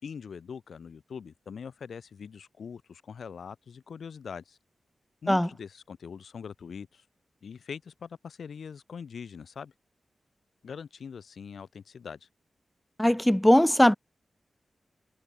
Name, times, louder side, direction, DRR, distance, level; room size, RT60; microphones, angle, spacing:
voice 1, 0.0-4.6 5.2-7.0 7.4-9.7 10.6-12.3, left 6 dB, 80° left, 3.5 m, -42 dB
voice 2, 13.0-14.0, left 1 dB, 10° left, 1.1 m, -20 dB
cardioid pair, 55°, 0 cm